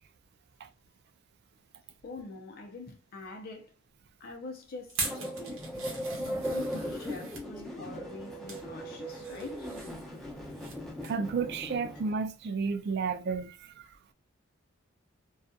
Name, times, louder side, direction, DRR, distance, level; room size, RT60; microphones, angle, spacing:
voice 1, 2.0-3.7 4.2-5.6 6.2-9.7, left 3 dB, 45° left, 0.5 m, -44 dB
sound 1, 4.9-7.5 8.1-8.7 9.0-10.8 11.0-11.2 11.6-11.7, right 4 dB, 80° right, 0.9 m, -41 dB
sound 2, 5.0-12.1, equal, ahead, 0.8 m, -38 dB
voice 2, 11.0-13.9, right 5 dB, 50° right, 0.3 m, -32 dB
2.6 x 2.3 x 2.2 m
head